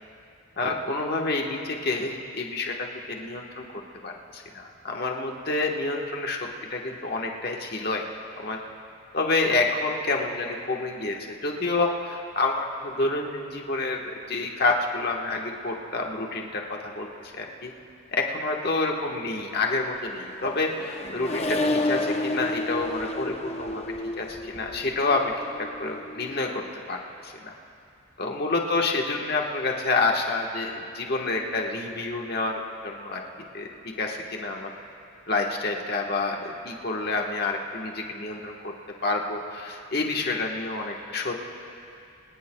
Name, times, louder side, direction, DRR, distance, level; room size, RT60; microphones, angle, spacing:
voice 1, 0.6-3.6 4.0-6.4 6.7-8.0 8.4-8.6 9.1-17.1 17.3-17.7 18.1-23.8 24.2-25.3 25.8-26.6 26.9-27.0 27.2-27.5 28.2-33.2 33.5-34.7 35.3-38.7 39.0-41.3, left 3 dB, 45° left, 1 dB, 1.3 m, -28 dB
Accelerating revving vroom, 19.8-26.5, left 2 dB, 30° left, 0.6 m, -31 dB
25.5 x 18.5 x 2.3 m, 2.6 s
head